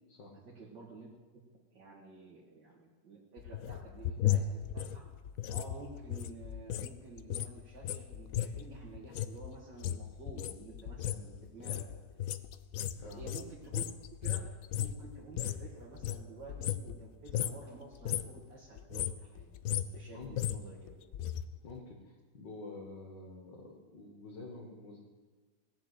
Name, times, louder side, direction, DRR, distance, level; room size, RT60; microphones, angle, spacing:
voice 1, 0.4-1.1 1.3-1.4 1.7-5.1 5.5-11.8 12.9-13.8 14.2-19.5 19.9-21.0, right 3 dB, 85° right, -5 dB, 2.7 m, -51 dB
sound 1, 3.4-6.9 7.2-15.7 15.9-17.0 17.3-17.6 17.9-18.4 18.8-21.4 21.7-21.8, left 11 dB, 65° left, 0.9 m, -35 dB
voice 2, 21.6-25.0, left 2 dB, 80° left, -2 dB, 2.3 m, -48 dB
17.5 x 7.3 x 7.8 m, 1.4 s
omnidirectional pair, 1.9 m